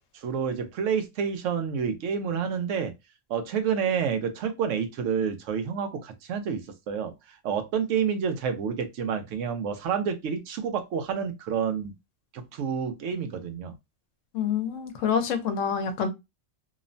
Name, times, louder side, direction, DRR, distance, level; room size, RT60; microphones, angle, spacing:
voice 1, 0.1-2.9 3.3-7.1 7.4-11.9 12.3-13.7, right 7 dB, 80° right, 0.9 m, -29 dB
voice 2, 14.3-16.1, left 7 dB, 90° left, 1.0 m, -27 dB
2.9 x 2.1 x 2.5 m
omnidirectional pair, 1.3 m